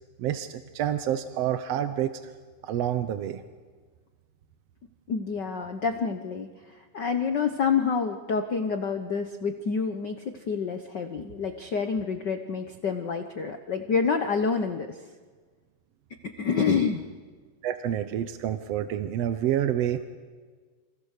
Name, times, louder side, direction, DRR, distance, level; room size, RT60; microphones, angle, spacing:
voice 1, 0.2-2.1 2.6-3.4 17.6-20.0, right 11 dB, 70° right, 9 dB, 1.6 m, -28 dB
voice 2, 5.1-15.0 16.2-17.0, left 5 dB, 90° left, 6 dB, 0.9 m, -28 dB
28.0 x 27.5 x 6.7 m, 1.5 s
omnidirectional pair, 3.7 m